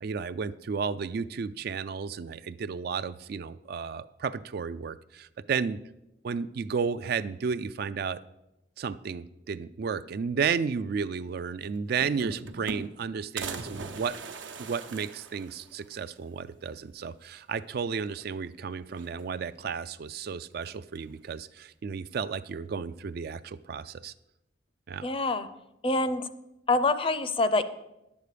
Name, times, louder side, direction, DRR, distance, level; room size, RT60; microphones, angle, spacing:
voice 1, 0.0-5.8 6.2-8.2 8.8-14.2 14.6-24.1 24.9-25.1, right 6 dB, 55° right, 14 dB, 0.3 m, -33 dB
sound 1, 11.4-11.5 11.7-13.0 13.4-16.0 16.4-16.5 16.7-16.8 18.0-18.5 18.8-19.6 20.6-21.2, right 4 dB, 90° right, 0.9 m, -41 dB
voice 2, 25.0-25.5 25.8-26.3 26.7-27.6, left 2 dB, 30° left, 12 dB, 0.5 m, -25 dB
10.5 x 8.2 x 5.0 m, 0.91 s
head